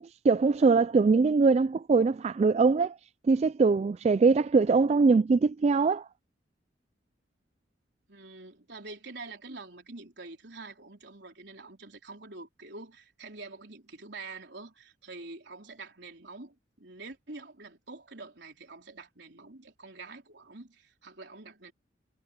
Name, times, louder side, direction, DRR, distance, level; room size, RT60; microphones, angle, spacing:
voice 1, 0.0-3.0 3.3-6.1, right 4 dB, 35° right, 0.3 m, -22 dB
voice 2, 8.1-21.7, right 3 dB, 65° right, 4.4 m, -46 dB
head